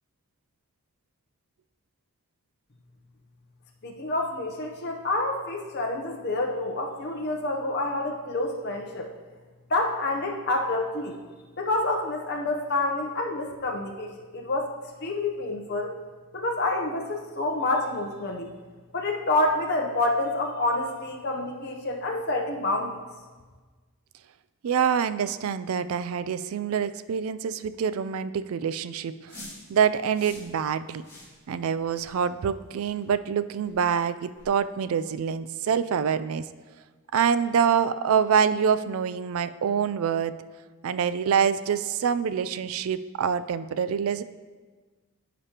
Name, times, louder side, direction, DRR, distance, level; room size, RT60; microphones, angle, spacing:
voice 1, 3.8-9.1 9.7-11.2 11.6-14.7 15.0-15.9 16.3-18.5 18.9-22.9, left 2 dB, 50° left, 0 dB, 0.7 m, -28 dB
voice 2, 24.6-29.1 29.7-31.0 31.5-36.4 37.1-40.3 40.8-44.2, right 7 dB, 75° right, 13 dB, 0.3 m, -26 dB
sound 1, 29.3-29.6 30.1-30.5 31.0-31.3 31.9-32.1 32.8-33.0 33.6-33.7 34.4-34.5, left 1 dB, 15° left, 2.1 m, -45 dB
14.5 x 5.1 x 2.9 m, 1.4 s
head